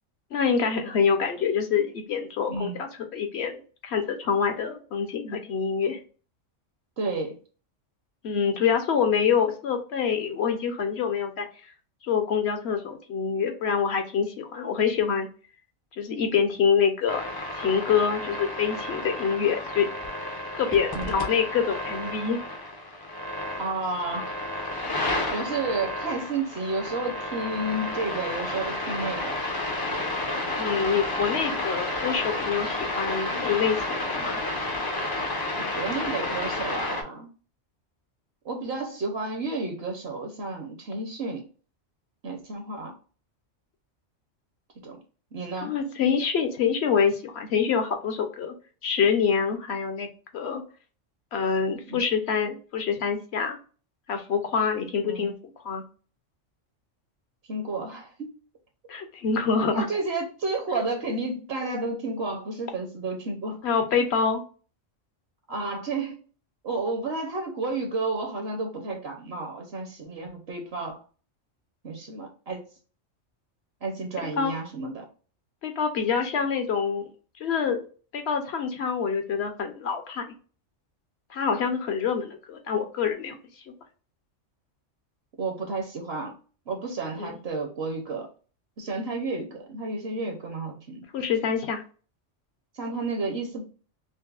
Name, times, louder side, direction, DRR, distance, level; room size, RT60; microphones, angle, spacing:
voice 1, 0.3-6.0 8.2-11.5 12.0-15.3 16.0-17.3 17.6-19.9 20.5-22.4 30.6-34.4 45.6-48.5 48.8-50.6 51.3-53.6 54.1-55.3 55.6-55.8 58.9-59.9 63.6-64.4 74.4-74.5 75.6-77.1 77.4-77.9 78.1-80.2 81.3-83.4 87.2-87.3 91.1-91.8, left 6 dB, 65° left, 6 dB, 0.9 m, -26 dB
voice 2, 2.5-2.8 7.0-7.4 20.9-21.2 23.6-24.4 25.3-29.4 35.6-37.3 38.4-41.5 42.2-42.9 44.8-45.0 45.3-45.7 51.9-52.0 55.0-55.3 57.5-58.3 59.7-63.6 65.5-66.2 66.6-71.0 71.8-72.6 73.8-75.0 85.4-86.3 86.7-88.3 88.8-91.1 92.7-93.6, right 3 dB, 60° right, 3 dB, 0.9 m, -31 dB
sound 1, 17.1-37.0, left 1 dB, 30° left, 0.4 m, -31 dB
5.2 x 2.0 x 2.3 m, 0.38 s
omnidirectional pair, 1.3 m